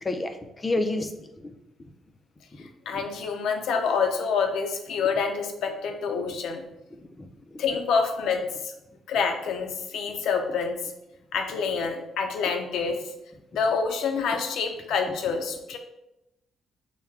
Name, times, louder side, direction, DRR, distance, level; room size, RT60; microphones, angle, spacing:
voice 1, 0.0-1.6 2.6-3.0 7.2-7.6, left 2 dB, 25° left, 6 dB, 0.5 m, -31 dB
voice 2, 2.6-6.6 7.6-8.7 9.1-10.9 11.3-13.1 13.5-15.8, left 5 dB, 80° left, 4 dB, 0.6 m, -27 dB
5.6 x 2.2 x 3.5 m, 0.88 s
cardioid pair, 90°, 0 cm